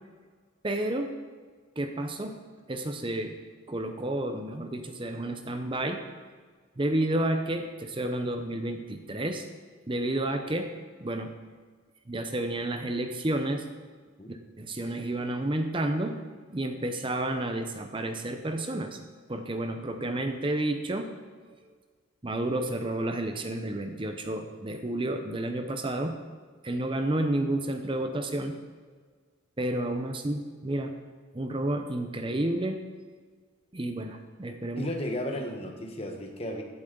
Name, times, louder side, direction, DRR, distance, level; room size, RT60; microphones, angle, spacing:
voice 1, 0.6-1.1 1.8-2.4 2.7-3.4 3.7-6.0 6.8-9.4 9.9-10.7 11.0-11.3 12.1-13.6 14.3-16.2 16.5-19.0 19.3-21.1 22.2-26.2 26.6-28.6 29.6-30.9 31.3-32.8 33.7-34.9, right 1 dB, 25° right, 6 dB, 0.7 m, -30 dB
voice 2, 34.8-36.6, left 1 dB, 30° left, 2 dB, 1.2 m, -34 dB
15.0 x 8.1 x 3.9 m, 1.5 s
head